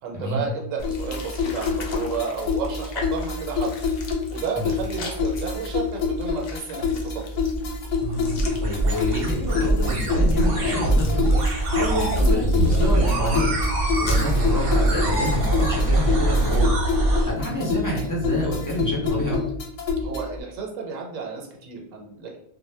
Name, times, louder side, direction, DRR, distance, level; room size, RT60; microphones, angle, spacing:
voice 1, 0.0-3.7 4.3-7.4 20.0-22.4, right 5 dB, 80° right, 0 dB, 1.0 m, -32 dB
sound 1, 0.8-20.4, left 5 dB, 90° left, 1.0 m, -27 dB
sound 2, 0.8-16.8, left 3 dB, 65° left, 0.6 m, -41 dB
sound 3, 7.4-17.3, right 1 dB, 50° right, 0.8 m, -22 dB
voice 2, 8.0-11.3 11.7-13.5 14.0-16.7 17.3-19.4, left 1 dB, 30° left, -5 dB, 0.3 m, -28 dB
2.1 x 2.0 x 3.1 m, 0.74 s
omnidirectional pair, 1.3 m